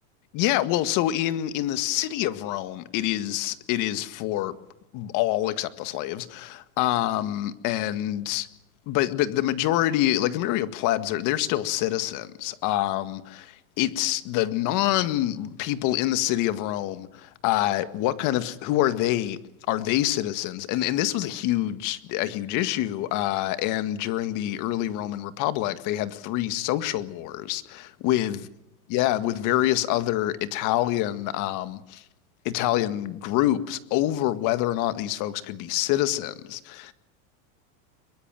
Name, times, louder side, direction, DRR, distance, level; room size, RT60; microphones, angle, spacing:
voice 1, 0.3-4.6 4.9-8.5 8.9-19.4 19.7-28.4 28.9-32.0 32.5-36.9, left 14 dB, 45° left, 1.8 m, -26 dB
23.0 x 22.5 x 7.6 m
supercardioid pair, 140°, 42 cm